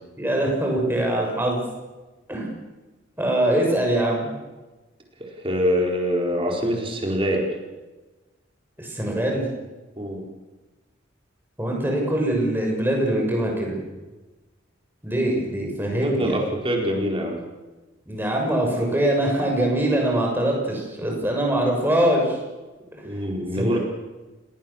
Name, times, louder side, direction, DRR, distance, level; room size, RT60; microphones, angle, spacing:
voice 1, 0.2-1.6 2.3-2.5 3.2-4.3 8.8-9.5 11.6-13.8 15.0-16.4 18.1-22.4 23.5-23.8, right 1 dB, 10° right, 0 dB, 6.6 m, -23 dB
voice 2, 5.2-7.5 10.0-10.2 15.8-17.4 23.0-23.8, equal, 25° right, 0 dB, 4.5 m, -25 dB
30.0 x 19.0 x 7.3 m, 1.2 s
head